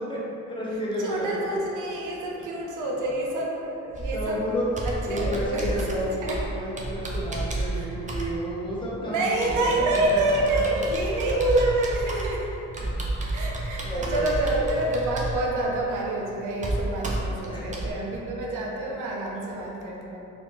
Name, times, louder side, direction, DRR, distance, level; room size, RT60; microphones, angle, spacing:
voice 1, 0.5-1.4 4.1-9.3 9.6-10.2 12.8-12.9 13.8-14.7 17.5-17.9, equal, 15° left, -7 dB, 1.0 m, -31 dB
voice 2, 1.0-4.4 5.1-6.4 7.7-7.9 9.0-12.6 13.3-20.2, right 2 dB, 85° right, -2 dB, 0.7 m, -27 dB
Computer keyboard, 3.9-17.9, right 2 dB, 25° right, 0.6 m, -32 dB
4.1 x 2.8 x 3.1 m, 3.0 s
cardioid pair, 90°, 30 cm